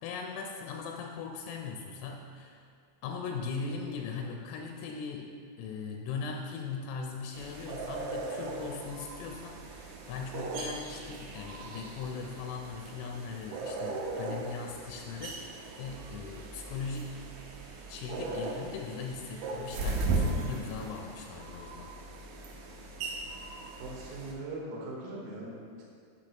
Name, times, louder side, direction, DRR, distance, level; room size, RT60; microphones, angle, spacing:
voice 1, 0.0-2.7 3.0-17.2 17.9-21.9, left 5 dB, 85° left, 1 dB, 3.2 m, -39 dB
sound 1, 7.3-24.3, right 3 dB, 85° right, 2.3 m, -38 dB
voice 2, 23.8-25.8, right 2 dB, 70° right, -4 dB, 2.4 m, -40 dB
7.7 x 6.2 x 2.9 m, 2.2 s
omnidirectional pair, 5.7 m